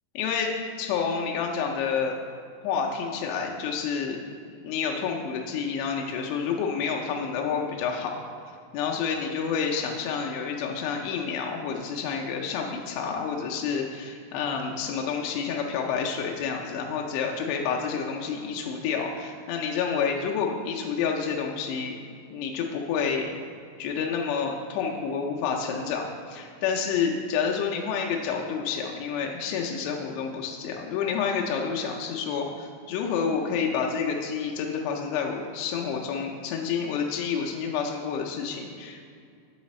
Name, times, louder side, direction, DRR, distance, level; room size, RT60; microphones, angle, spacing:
voice 1, 0.2-0.5 0.8-2.1 2.6-4.2 4.6-8.1 8.7-21.9 22.3-23.3 23.8-39.1, left 6 dB, 85° left, 1 dB, 2.4 m, -29 dB
8.6 x 3.9 x 4.2 m, 2.3 s
omnidirectional pair, 5.4 m